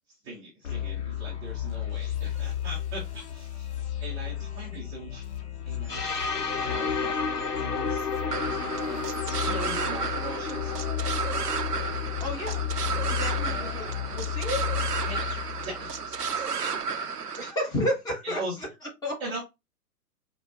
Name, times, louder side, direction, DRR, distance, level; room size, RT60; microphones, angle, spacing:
voice 1, 0.1-5.2 5.6-7.2 7.6-8.1 8.6-9.0 9.3-10.7 15.0-16.8 18.2-18.6 19.2-19.4, right 1 dB, 10° right, -5 dB, 0.6 m, -40 dB
sound 1, 0.6-16.3, left 10 dB, 45° left, 1.0 m, -34 dB
sound 2, 5.9-13.7, left 4 dB, 85° left, 0.8 m, -33 dB
sound 3, 8.3-17.5, right 5 dB, 80° right, 0.7 m, -32 dB
voice 2, 12.2-12.6 13.1-14.7 17.4-18.4 19.0-19.2, equal, 10° left, -1 dB, 1.0 m, -31 dB
4.9 x 2.2 x 3.9 m, 0.23 s
figure-of-eight pair, 120°, 46 cm